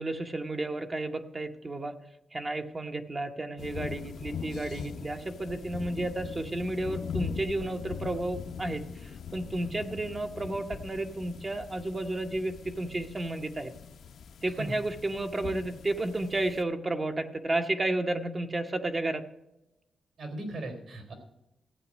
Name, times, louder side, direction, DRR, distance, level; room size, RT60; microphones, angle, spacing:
voice 1, 0.0-1.9 2.3-13.7 14.4-19.2, right 2 dB, 25° right, 6 dB, 0.9 m, -32 dB
sound 1, 3.6-16.6, left 6 dB, 75° left, 1.0 m, -41 dB
voice 2, 20.2-21.1, right 1 dB, 65° right, 5 dB, 3.9 m, -37 dB
14.5 x 8.9 x 6.1 m, 0.90 s
wide cardioid pair, 150°, 0 cm